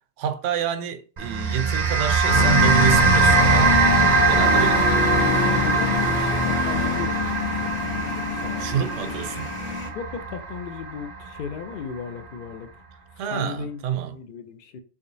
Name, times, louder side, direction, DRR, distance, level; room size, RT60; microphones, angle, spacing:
voice 1, 0.2-3.9 4.3-5.7 8.6-9.5 13.2-14.2, right 9 dB, 80° right, 0.9 m, -28 dB
sound 1, 1.2-11.7, right 4 dB, 45° right, 0.6 m, -22 dB
sound 2, 2.3-9.9, left 5 dB, 75° left, 1.3 m, -26 dB
voice 2, 5.6-8.8 9.9-12.7 13.3-13.9 14.1-14.8, left 7 dB, 55° left, 0.6 m, -36 dB
3.6 x 3.4 x 2.7 m
omnidirectional pair, 1.3 m